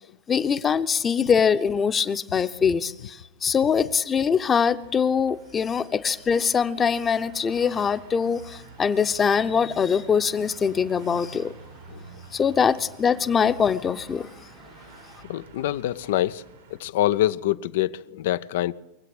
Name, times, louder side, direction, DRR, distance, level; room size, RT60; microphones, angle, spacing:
voice 1, 0.3-11.5 12.3-14.3, left 6 dB, 25° left, 0.8 m, -23 dB
sound 1, 4.7-16.8, right 4 dB, 85° right, 2.6 m, -48 dB
voice 2, 15.2-16.4 16.7-18.7, left 13 dB, 70° left, 0.5 m, -25 dB
22.5 x 7.9 x 7.8 m
hypercardioid pair, 100°, 0 cm